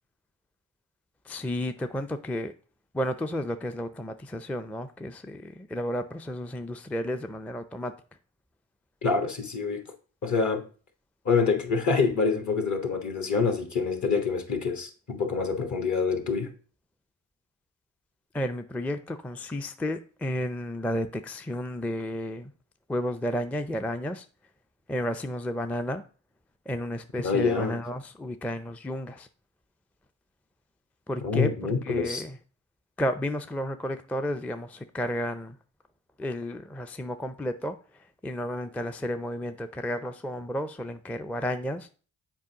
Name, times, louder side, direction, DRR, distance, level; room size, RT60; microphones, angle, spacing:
voice 1, 1.2-2.5 2.9-7.9 18.3-22.5 22.9-24.3 24.9-26.0 26.7-29.3 31.1-32.4 33.0-35.6 36.2-41.9, equal, 5° left, 0.4 m, -32 dB
voice 2, 9.0-9.8 10.2-10.6 11.2-16.5 27.2-27.8 31.2-32.2, left 5 dB, 50° left, 1.4 m, -26 dB
7.4 x 4.6 x 2.8 m
hypercardioid pair, 45°, 38 cm